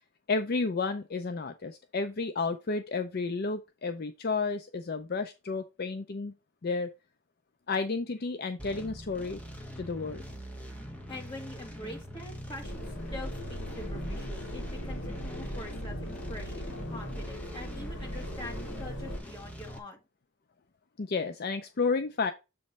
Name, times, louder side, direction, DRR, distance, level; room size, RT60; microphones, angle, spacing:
voice 1, 0.3-6.3 6.6-6.9 7.7-9.4 9.8-10.2 21.0-22.3, left 4 dB, 45° left, 0.5 m, -31 dB
sound 1, 8.6-19.8, equal, 5° left, 1.0 m, -43 dB
voice 2, 11.1-16.0 16.3-20.0, left 1 dB, 20° left, 2.0 m, -44 dB
sound 2, 12.6-19.2, equal, 65° left, 1.5 m, -39 dB
7.7 x 3.1 x 5.3 m
head